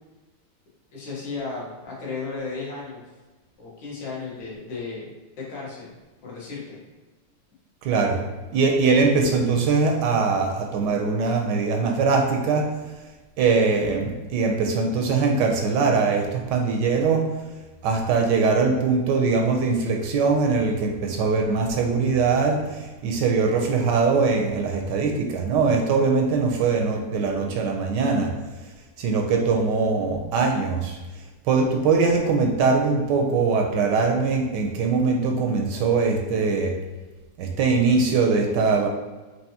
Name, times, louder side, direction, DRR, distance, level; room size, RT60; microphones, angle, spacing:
voice 1, 0.9-3.0 3.6-5.9 6.2-6.8, left 4 dB, 75° left, -6 dB, 1.9 m, -34 dB
voice 2, 7.8-8.2 8.5-12.7 13.4-17.2 17.8-28.3 29.0-31.0 31.5-36.7 37.4-38.9, right 4 dB, 75° right, 2 dB, 1.1 m, -22 dB
4.6 x 2.8 x 2.7 m, 1.2 s
omnidirectional pair, 2.1 m